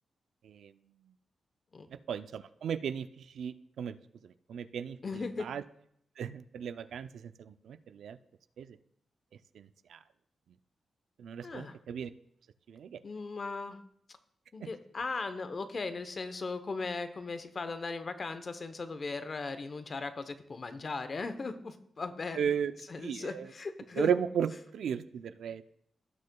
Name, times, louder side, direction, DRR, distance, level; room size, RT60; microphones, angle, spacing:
voice 1, 2.1-4.0 4.2-5.6 6.2-8.2 8.6-8.8 9.5-10.0 11.2-12.1 12.7-13.0 14.6-14.7 22.4-22.7 23.0-23.5 24.0-25.6, right 8 dB, 85° right, 12 dB, 0.4 m, -35 dB
voice 2, 5.0-5.5 11.4-11.8 13.0-13.8 14.5-24.1, left 3 dB, 45° left, 10 dB, 0.8 m, -38 dB
17.0 x 6.5 x 2.3 m, 0.70 s
cardioid pair, 90°, 0 cm